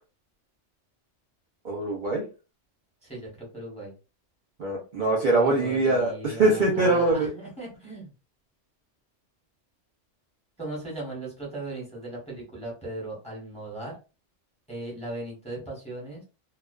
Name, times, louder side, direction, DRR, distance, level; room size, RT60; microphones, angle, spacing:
voice 1, 1.6-2.2 4.6-7.3, right 2 dB, 50° right, -2 dB, 0.7 m, -23 dB
voice 2, 3.0-3.9 5.3-8.1 10.6-13.9 14.7-16.2, right 1 dB, 5° left, -4 dB, 1.0 m, -37 dB
2.3 x 2.3 x 2.3 m, 0.33 s
omnidirectional pair, 1.2 m